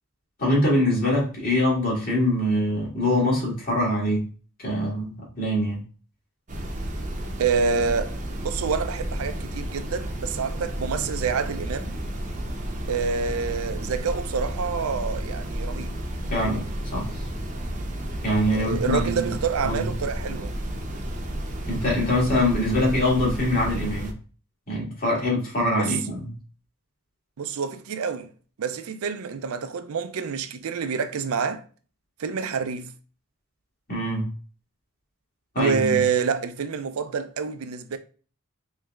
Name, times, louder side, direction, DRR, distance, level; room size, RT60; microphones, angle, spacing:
voice 1, 0.4-4.3 4.6-5.8 16.3-17.1 18.2-19.3 19.6-19.9 21.7-24.1 24.7-26.3 33.9-34.3 35.5-36.0, left 1 dB, 40° left, 1.9 m, -24 dB
sound 1, 6.5-24.1, right 1 dB, 35° right, 0.7 m, -32 dB
voice 2, 7.4-8.1 8.4-11.9 12.9-16.0 18.5-20.5 25.8-25.9 27.4-28.3 28.6-31.6 32.2-32.9 35.6-38.0, right 5 dB, 80° right, 0.4 m, -27 dB
4.5 x 3.1 x 2.4 m
head